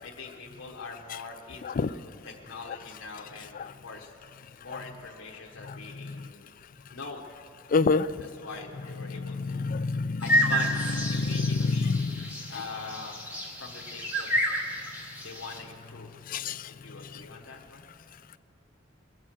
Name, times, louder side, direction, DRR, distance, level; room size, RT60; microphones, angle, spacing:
voice 1, 0.0-4.1 4.6-6.5 6.9-7.3 8.2-9.7 10.2-11.9 12.5-13.1 13.6-14.3 15.2-16.1 16.7-17.9, left 4 dB, 90° left, -1 dB, 1.1 m, -43 dB
voice 2, 7.7-8.1 9.4-10.2 11.1-12.2 16.3-16.6, left 4 dB, 45° left, 14 dB, 0.4 m, -26 dB
sound 1, 10.2-15.6, equal, 10° right, 2.0 m, -30 dB
22.5 x 7.6 x 6.4 m, 2.6 s
head